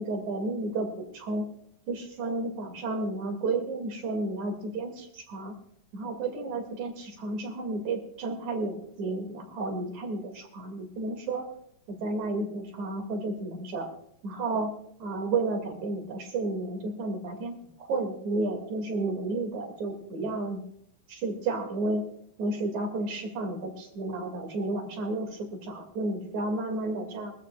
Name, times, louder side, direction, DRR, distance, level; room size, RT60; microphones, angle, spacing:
voice 1, 0.0-1.5 1.9-5.5 5.9-11.4 11.9-13.9 14.2-14.7 15.0-20.6 21.1-22.0 22.4-27.3, right 2 dB, 55° right, 4 dB, 3.4 m, -32 dB
22.5 x 14.0 x 2.3 m, 0.68 s
omnidirectional pair, 4.0 m